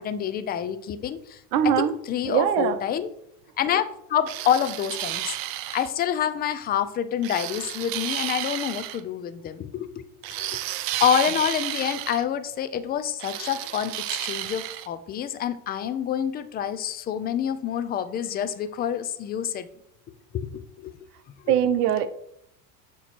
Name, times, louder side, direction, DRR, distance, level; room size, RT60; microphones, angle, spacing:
voice 1, 0.0-1.4 1.8-3.1 3.6-5.4 5.7-10.6 11.0-19.7 20.3-20.9 21.3-21.5, left 9 dB, 25° left, 11 dB, 0.3 m, -27 dB
voice 2, 1.5-1.9 2.2-2.8 21.5-22.1, right 9 dB, 90° right, 11 dB, 0.8 m, -21 dB
sound 1, 4.3-5.9 7.2-9.0 10.2-12.2 13.2-14.9, right 14 dB, 50° right, 0.5 m, -32 dB
6.7 x 3.0 x 5.9 m, 0.73 s
supercardioid pair, 120°, 46 cm